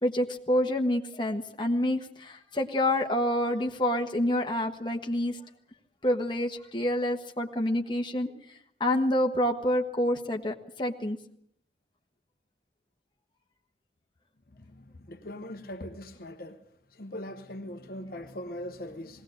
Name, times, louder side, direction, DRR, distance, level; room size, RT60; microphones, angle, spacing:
voice 1, 0.0-5.4 6.0-8.3 8.8-11.2, left 1 dB, 25° left, 3 dB, 1.4 m, -27 dB
voice 2, 15.1-16.6 17.0-19.2, left 1 dB, 55° left, 7 dB, 1.1 m, -40 dB
20.0 x 17.5 x 7.9 m, 0.69 s
head